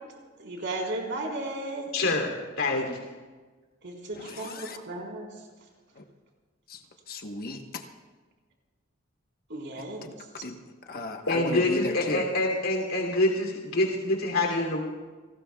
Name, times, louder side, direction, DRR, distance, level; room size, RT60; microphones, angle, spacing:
voice 1, 0.4-2.1 3.8-4.6 4.8-5.3 9.5-10.1 10.4-10.5, right 2 dB, 60° right, -1 dB, 3.9 m, -35 dB
voice 2, 1.9-2.3 2.6-2.9 11.3-14.8, left 2 dB, 80° left, 0 dB, 2.8 m, -26 dB
voice 3, 4.1-4.8 6.0-6.1 6.7-7.8 10.0-10.6 10.9-12.3, left 2 dB, 45° left, 4 dB, 1.1 m, -35 dB
30.0 x 19.0 x 2.3 m, 1.3 s
head